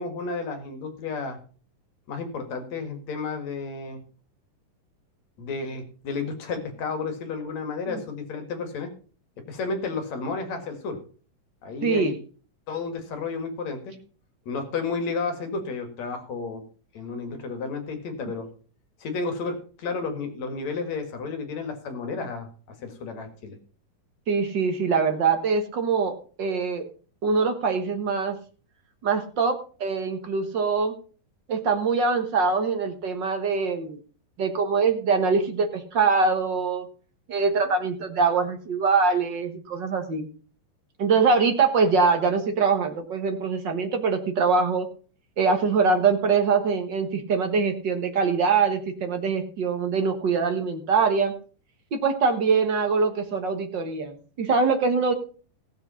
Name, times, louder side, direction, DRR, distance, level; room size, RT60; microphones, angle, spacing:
voice 1, 0.0-1.4 2.1-4.0 5.4-8.9 9.5-11.0 11.6-12.1 12.7-14.0 14.5-16.6 16.9-18.5 19.0-22.5 22.8-23.6, left 4 dB, 55° left, 6 dB, 3.1 m, -32 dB
voice 2, 11.8-12.1 24.3-26.8 27.2-28.4 29.0-30.9 31.5-34.0 34.4-36.9 37.3-40.3 41.0-44.9 45.4-51.3 51.9-55.1, right 5 dB, 50° right, 6 dB, 1.4 m, -23 dB
15.5 x 7.8 x 5.7 m, 0.40 s
omnidirectional pair, 3.9 m